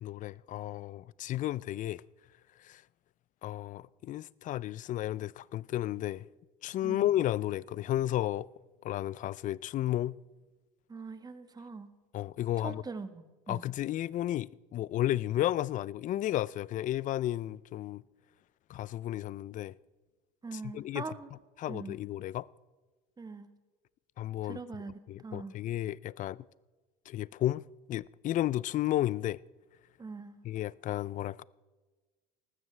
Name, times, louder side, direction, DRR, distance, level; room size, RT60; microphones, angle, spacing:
voice 1, 0.0-2.0 2.6-2.8 3.4-6.3 6.6-8.5 8.8-10.2 12.1-12.8 13.5-18.0 18.7-19.7 20.5-21.0 21.6-22.5 24.2-24.6 25.1-26.4 27.1-27.6 27.9-29.4 30.4-31.4, left 13 dB, 40° left, 0.4 m, -33 dB
voice 2, 10.9-11.9 12.6-13.6 20.4-21.3 21.7-22.0 23.2-23.5 24.4-25.5 30.0-30.4, right 4 dB, 20° right, 1.3 m, -42 dB
19.5 x 14.0 x 3.3 m
hypercardioid pair, 85°, 20 cm